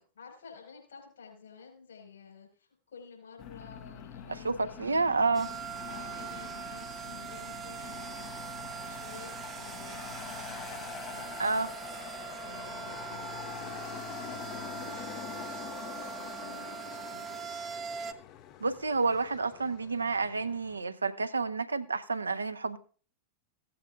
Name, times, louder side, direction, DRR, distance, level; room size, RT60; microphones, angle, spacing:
voice 1, 0.0-5.0 5.9-8.3 8.6-11.7 12.4-17.4, left 6 dB, 65° left, 5.2 m, -52 dB
Aircraft, 3.4-20.8, left 10 dB, 40° left, 0.6 m, -45 dB
voice 2, 4.4-5.5 11.4-11.7 18.6-22.8, right 4 dB, 75° right, 0.5 m, -29 dB
sound 1, 5.3-18.1, right 8 dB, 25° right, 0.7 m, -42 dB
16.0 x 8.6 x 2.6 m
figure-of-eight pair, 90°, 0 cm